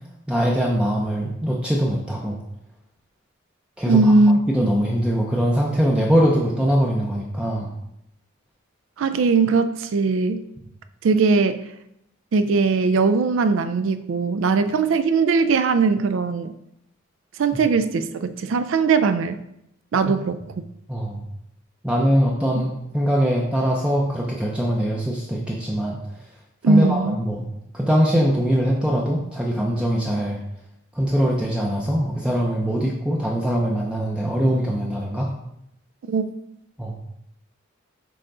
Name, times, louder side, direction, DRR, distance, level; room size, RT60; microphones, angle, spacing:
voice 1, 0.3-2.4 3.8-4.1 4.5-7.7 20.1-20.2 20.9-21.2 21.8-26.0 26.7-27.5 27.7-30.4 30.9-35.3 36.8-37.0, equal, 5° right, -2 dB, 0.5 m, -22 dB
voice 2, 3.9-4.4 9.0-10.4 11.0-11.6 12.3-16.5 17.4-19.4 19.9-20.4 26.6-27.2 36.1-36.2, right 4 dB, 65° right, 11 dB, 0.4 m, -19 dB
6.7 x 3.7 x 3.7 m, 0.80 s
head